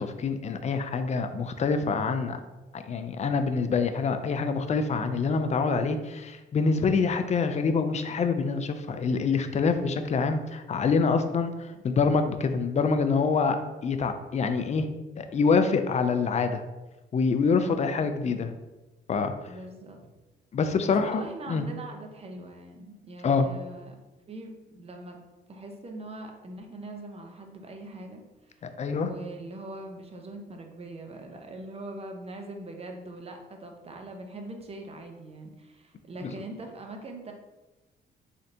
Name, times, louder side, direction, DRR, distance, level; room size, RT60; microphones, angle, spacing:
voice 1, 0.0-2.4 2.7-14.9 15.2-16.6 17.1-18.5 19.1-19.3 20.5-21.6 23.2-23.5 28.8-29.1 36.2-36.3, left 4 dB, 35° left, 8 dB, 0.4 m, -26 dB
voice 2, 17.7-18.4 19.5-20.0 20.8-24.0 24.3-25.2 25.5-37.3, right 2 dB, 30° right, 3 dB, 0.7 m, -42 dB
3.8 x 3.3 x 2.8 m, 1.1 s
cardioid pair, 90°, 20 cm